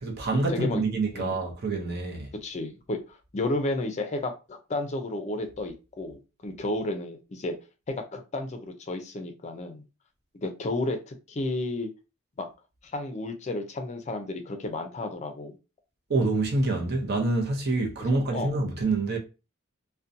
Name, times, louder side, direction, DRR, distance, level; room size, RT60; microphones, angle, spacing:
voice 1, 0.0-2.3 16.1-19.2, right 3 dB, 55° right, 0.6 m, -26 dB
voice 2, 0.5-0.8 1.1-1.3 2.4-7.6 7.9-9.8 10.4-11.9 12.4-12.5 12.8-15.5 18.3-18.7, left 2 dB, 35° left, 0.4 m, -32 dB
2.6 x 2.1 x 2.5 m
head